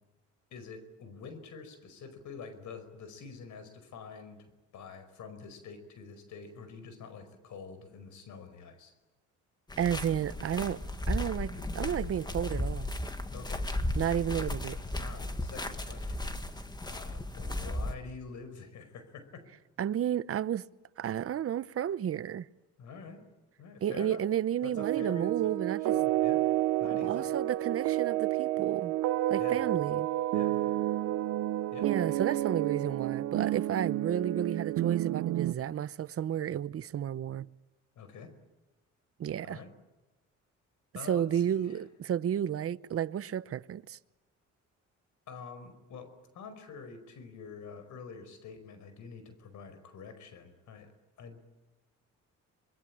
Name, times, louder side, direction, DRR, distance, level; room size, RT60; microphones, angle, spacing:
voice 1, 0.5-4.4 4.7-8.9 13.3-13.6 15.0-16.2 16.8-19.4 22.8-23.3 23.6-24.2 24.6-25.5 25.9-26.5 26.8-27.3 29.4-29.6 30.3-30.7 31.7-32.2 37.9-38.3 39.4-39.7 40.9-41.8 45.3-50.9 51.2-51.6, left 5 dB, 75° left, 5.1 m, -46 dB
sound 1, 9.7-18.0, left 1 dB, 15° left, 1.9 m, -35 dB
voice 2, 9.8-10.8 11.1-12.9 14.0-14.8 19.8-20.7 21.0-22.5 23.8-25.9 26.9-29.0 29.3-30.1 31.8-37.5 39.2-39.6 41.0-44.0, right 10 dB, 50° right, 0.8 m, -32 dB
sound 2, 24.8-35.5, right 14 dB, 90° right, 1.0 m, -30 dB
25.5 x 22.0 x 8.8 m
cardioid pair, 90°, 30 cm